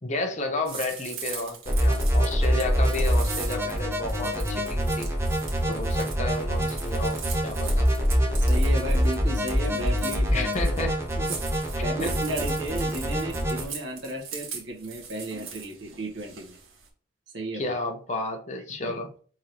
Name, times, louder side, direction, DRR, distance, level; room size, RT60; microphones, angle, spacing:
voice 1, 0.0-5.1 5.7-7.9 10.3-11.0 12.0-12.2 17.5-19.1, left 2 dB, 35° left, 0.8 m, -32 dB
sound 1, 0.6-16.9, right 6 dB, 85° right, 1.5 m, -40 dB
sound 2, 1.7-13.6, equal, 15° right, 1.0 m, -25 dB
voice 2, 8.3-10.7 11.2-16.6 17.3-17.7 18.8-19.0, right 1 dB, 65° right, 1.4 m, -34 dB
4.8 x 3.7 x 2.9 m
head